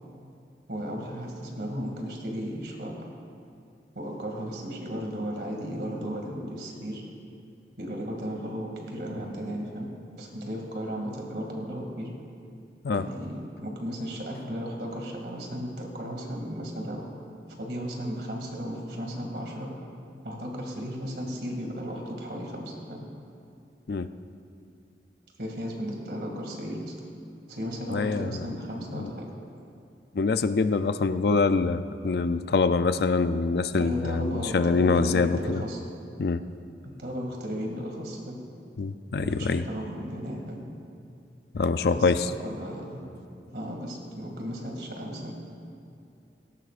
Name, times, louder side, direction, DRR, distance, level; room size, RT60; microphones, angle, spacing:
voice 1, 0.7-3.1 3.9-7.0 7.8-9.9 10.2-12.1 12.9-17.1 17.6-19.7 20.2-23.0 25.4-26.9 27.5-29.3 33.7-35.8 36.8-38.4 39.2-40.6 41.8-43.0 43.5-45.4, equal, 60° right, 0 dB, 2.4 m, -35 dB
voice 2, 27.9-28.5 28.9-29.1 30.1-35.6 36.2-36.4 38.8-39.6 41.5-42.3, left 4 dB, 60° left, 11 dB, 0.4 m, -25 dB
17.5 x 17.5 x 2.5 m, 2.5 s
head